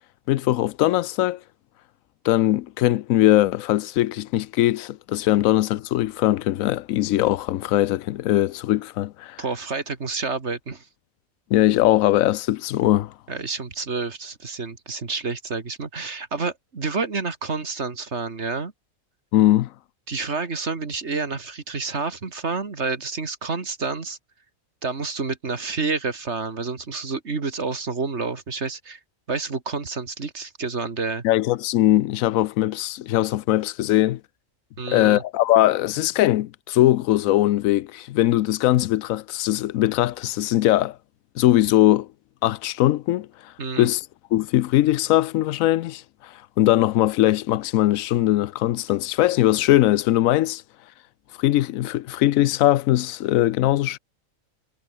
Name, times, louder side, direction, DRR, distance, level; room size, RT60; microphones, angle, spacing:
voice 1, 0.3-1.4 2.2-9.4 11.5-13.1 19.3-19.7 31.2-34.2 34.9-41.0 41.4-42.1 42.4-43.3 43.8-44.0 44.3-46.0 46.6-50.6 51.4-54.0, left 14 dB, 85° left, 1.0 m, -20 dB
voice 2, 9.4-10.9 13.3-18.7 20.1-24.2 24.8-29.0 29.3-31.2 34.8-35.2 43.6-43.9, right 4 dB, 55° right, 2.3 m, -29 dB
omnidirectional pair, 1.4 m